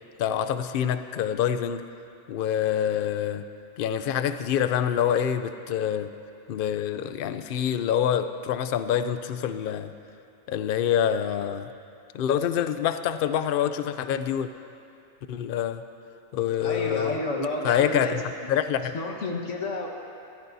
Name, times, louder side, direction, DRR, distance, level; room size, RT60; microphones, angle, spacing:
voice 1, 0.2-1.8 2.3-3.4 3.8-6.1 6.5-9.9 10.5-11.7 12.1-14.5 15.3-15.8 16.3-17.2 17.6-18.2 18.5-18.9, left 9 dB, 60° left, 10 dB, 0.7 m, -26 dB
voice 2, 16.6-18.2 18.9-19.9, left 2 dB, 85° left, 0 dB, 1.7 m, -30 dB
21.0 x 15.0 x 2.7 m, 2.6 s
omnidirectional pair, 1.2 m